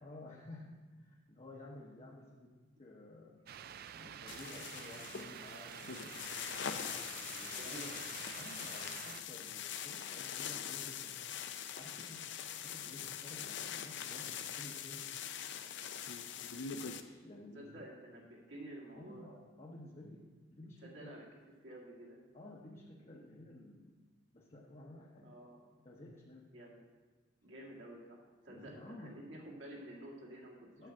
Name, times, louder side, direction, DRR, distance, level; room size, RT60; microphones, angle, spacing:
voice 1, 0.0-3.4 3.9-6.1 7.3-8.0 8.3-11.2 11.7-12.3 12.6-15.1 16.7-17.8 18.9-21.1 22.3-23.9 24.3-25.4 25.8-26.5 28.5-29.2 30.8-30.9, left 1 dB, 35° left, -3 dB, 0.9 m, -53 dB
sound 1, 3.5-9.2, right 9 dB, 50° right, 0.3 m, -49 dB
sound 2, 4.3-17.0, left 8 dB, 60° left, 0.5 m, -43 dB
voice 2, 7.6-8.1 17.5-19.3 20.8-21.2 21.6-22.2 25.2-25.6 26.5-26.8 27.4-30.9, right 1 dB, 70° right, -2 dB, 2.0 m, -51 dB
9.0 x 4.8 x 7.4 m, 1.3 s
head